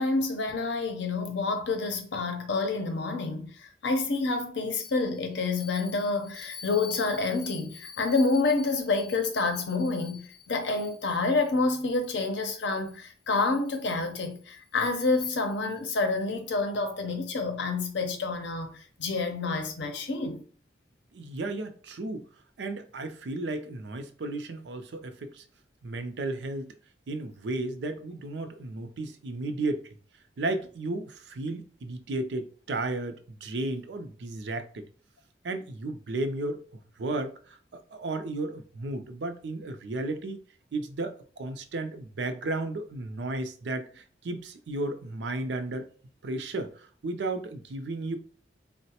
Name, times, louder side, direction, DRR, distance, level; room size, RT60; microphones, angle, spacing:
voice 1, 0.0-20.4, left 3 dB, 85° left, 0.6 m, -28 dB
voice 2, 21.1-22.3 22.6-25.4 25.8-26.7 27.1-29.9 30.4-34.9 35.4-40.4 40.7-45.9 46.2-48.2, right 2 dB, 75° right, 0.4 m, -34 dB
3.9 x 2.0 x 2.8 m
head